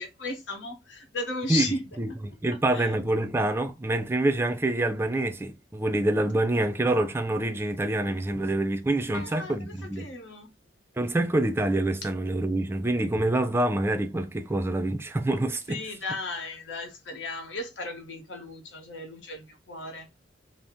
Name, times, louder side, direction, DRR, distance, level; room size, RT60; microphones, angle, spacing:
voice 1, 0.0-1.8 2.7-2.9 9.1-10.5 15.7-20.1, left 2 dB, 90° left, 1.0 m, -35 dB
voice 2, 2.0-10.1 11.0-15.8, right 1 dB, 15° right, 0.3 m, -26 dB
2.6 x 2.0 x 3.5 m
head